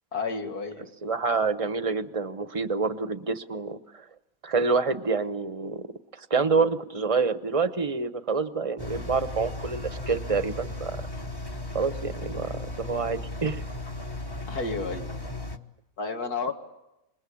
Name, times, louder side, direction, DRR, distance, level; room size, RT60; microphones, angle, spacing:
voice 1, 0.1-0.9 14.5-15.1 16.0-16.5, left 4 dB, 90° left, 4 dB, 2.5 m, -31 dB
voice 2, 1.0-4.0 4.4-5.9 6.1-11.0 11.7-13.6, right 4 dB, 25° right, 11 dB, 0.8 m, -27 dB
Engine, 8.8-15.6, left 2 dB, 20° left, 1.0 m, -36 dB
27.0 x 22.0 x 8.5 m, 0.91 s
omnidirectional pair, 1.6 m